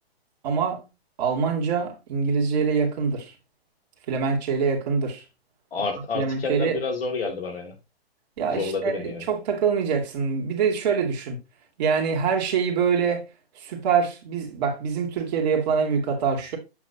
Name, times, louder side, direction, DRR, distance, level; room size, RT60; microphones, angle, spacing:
voice 1, 0.4-0.9 1.2-3.3 4.1-5.2 6.1-6.8 8.4-11.4 11.8-13.2 13.6-16.6, right 6 dB, 45° right, 2.3 m, -24 dB
voice 2, 5.7-7.7 8.5-9.2, left 4 dB, 65° left, 2.4 m, -29 dB
7.6 x 5.7 x 2.7 m
hypercardioid pair, 130°, 31 cm